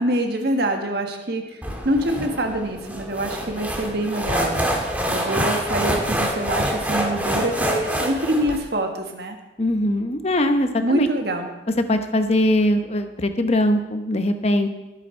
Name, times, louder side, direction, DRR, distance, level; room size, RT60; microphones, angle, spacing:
voice 1, 0.0-1.4 1.8-4.6 5.1-9.4 10.8-11.5, right 1 dB, 55° right, 4 dB, 1.5 m, -25 dB
sound 1, 1.6-8.6, equal, 10° right, 1.6 m, -26 dB
voice 2, 9.6-11.1 11.9-14.7, left 1 dB, 35° left, 7 dB, 0.9 m, -21 dB
18.5 x 8.4 x 4.5 m, 1.1 s
head